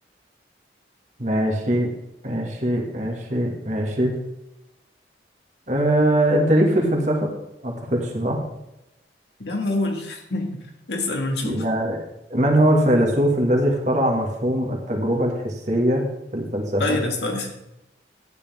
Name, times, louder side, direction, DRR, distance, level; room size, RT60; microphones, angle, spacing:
voice 1, 1.2-1.9 2.2-4.1 5.7-7.3 7.6-8.4 11.4-12.0 12.3-16.0 16.3-17.0, right 1 dB, 40° right, 0 dB, 2.1 m, -21 dB
voice 2, 9.4-11.6 16.8-17.5, left 2 dB, 70° left, 1 dB, 2.1 m, -26 dB
12.0 x 9.9 x 3.6 m, 0.89 s
head